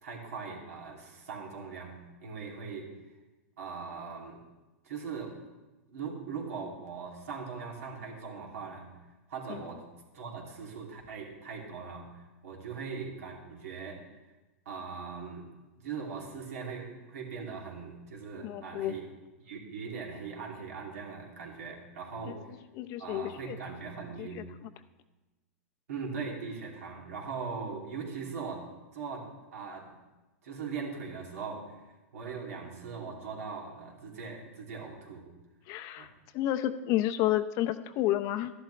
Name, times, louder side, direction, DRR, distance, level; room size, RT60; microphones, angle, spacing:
voice 1, 0.0-2.9 3.6-4.4 4.8-5.4 5.9-9.0 9.3-9.8 10.1-14.0 14.6-15.5 15.8-19.1 19.4-22.5 23.0-24.5 25.9-28.7 28.9-30.0 30.4-31.8 32.1-35.3 36.0-36.1, right 5 dB, 80° right, -1 dB, 2.8 m, -40 dB
voice 2, 18.4-18.9 22.2-22.4 22.7-23.6 24.2-24.7 35.7-36.1 36.3-38.5, left 13 dB, 45° left, 10 dB, 0.6 m, -31 dB
13.0 x 11.5 x 3.3 m, 1.1 s
hypercardioid pair, 125°, 8 cm